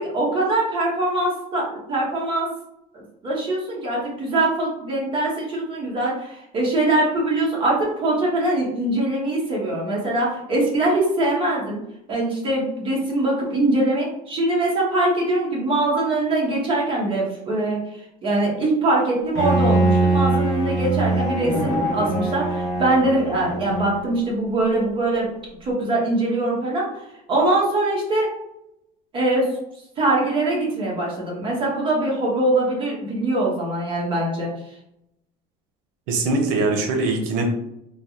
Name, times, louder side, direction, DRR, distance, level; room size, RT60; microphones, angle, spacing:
voice 1, 0.0-2.5 2.9-11.8 12.1-17.8 18.2-25.3 25.6-26.8 27.3-28.3 29.1-29.5 30.0-34.5, right 2 dB, 30° right, -4 dB, 1.1 m, -22 dB
Bowed string instrument, 19.3-24.1, right 2 dB, 20° left, 0.9 m, -22 dB
voice 2, 36.1-37.4, right 3 dB, 90° right, 3 dB, 0.7 m, -22 dB
3.2 x 2.2 x 2.8 m, 0.81 s
cardioid pair, 150°, 18 cm